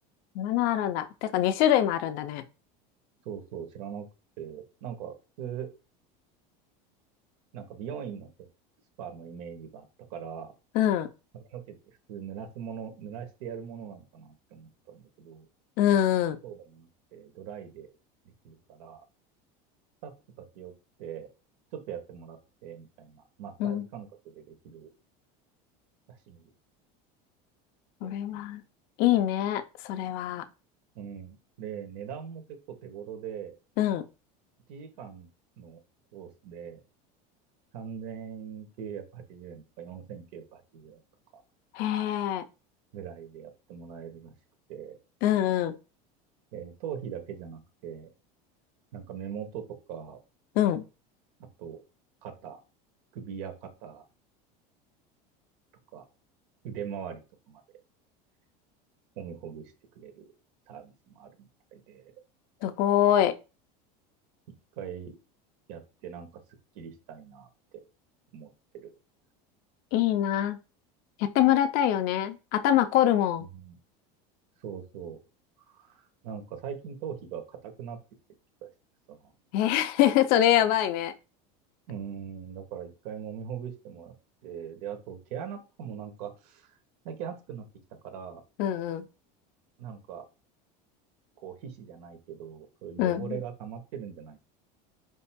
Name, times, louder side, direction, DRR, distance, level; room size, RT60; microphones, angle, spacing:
voice 1, 0.4-2.4 10.7-11.1 15.8-16.4 23.6-23.8 28.0-28.6 29.0-30.4 33.8-34.0 41.7-42.4 45.2-45.7 50.6-50.8 62.6-63.3 69.9-70.6 71.2-73.5 79.5-81.1 88.6-89.0 93.0-93.4, left 11 dB, 50° left, 0.5 m, -24 dB
voice 2, 3.2-4.1 4.4-5.7 7.5-8.3 9.0-10.5 11.3-15.5 16.4-17.9 18.4-19.0 20.0-20.7 21.0-21.3 21.7-24.9 26.3-26.5 28.0-28.4 30.9-33.5 34.7-35.3 35.6-35.8 36.1-36.8 37.7-41.0 41.3-41.4 42.9-44.3 44.7-45.0 46.5-48.1 48.9-49.6 49.9-50.2 51.4-51.8 52.2-52.6 53.1-54.0 55.9-56.0 56.6-57.6 59.2-60.2 60.7-62.1 64.8-65.2 65.7-66.3 66.7-67.5 68.3-68.9 73.4-73.8 74.6-75.2 75.7-78.0 78.6-78.7 79.1-79.3 81.9-84.1 84.4-86.8 87.0-87.6 88.0-88.4 89.8-90.2 91.4-94.4, right 8 dB, 70° right, 1.4 m, -41 dB
5.3 x 4.4 x 2.2 m
supercardioid pair, 150°, 20 cm